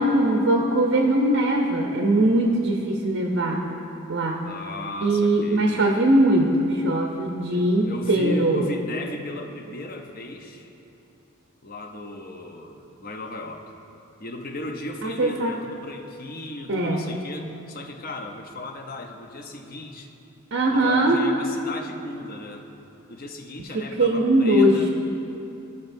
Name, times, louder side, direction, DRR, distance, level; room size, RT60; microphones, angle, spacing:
voice 1, 0.0-3.6 4.1-4.4 5.0-8.6 15.0-15.5 16.7-17.1 20.5-21.2 23.7-24.9, right 1 dB, 60° right, 1 dB, 0.6 m, -21 dB
voice 2, 4.4-5.7 7.5-10.7 11.6-13.6 14.2-20.1 20.7-22.7 23.1-24.9, left 1 dB, 40° left, 3 dB, 0.7 m, -36 dB
15.0 x 5.3 x 2.6 m, 2.9 s
head